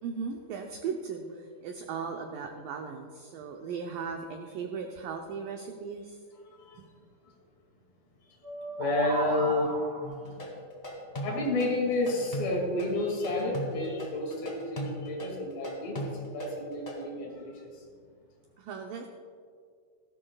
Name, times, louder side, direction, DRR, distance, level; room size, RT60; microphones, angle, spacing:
voice 1, 0.0-6.2 6.8-6.9 18.6-19.1, right 6 dB, 85° right, 3 dB, 1.9 m, -37 dB
voice 2, 6.4-6.8 8.8-9.8 10.2-10.4 11.2-16.0 16.3-17.8, left 2 dB, 60° left, -1 dB, 3.9 m, -30 dB
sound 1, 8.4-10.3, right 2 dB, 45° right, 2.4 m, -34 dB
sound 2, 10.0-17.0, equal, 15° left, 1.3 m, -37 dB
17.0 x 14.5 x 2.4 m, 2.1 s
omnidirectional pair, 4.8 m